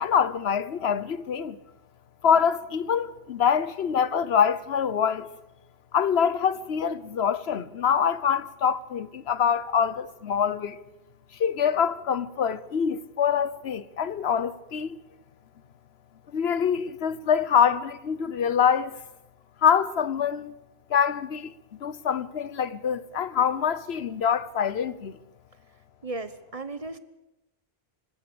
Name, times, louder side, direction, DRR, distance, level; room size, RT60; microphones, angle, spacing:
voice 1, 0.0-1.6 2.2-5.3 5.9-10.8 11.4-15.0 16.3-19.0 19.6-20.5 20.9-21.5 21.8-25.2, left 7 dB, 80° left, 1.1 m, -25 dB
voice 2, 26.0-27.0, right 2 dB, 35° right, 1.1 m, -35 dB
26.0 x 16.5 x 7.0 m
omnidirectional pair, 1.0 m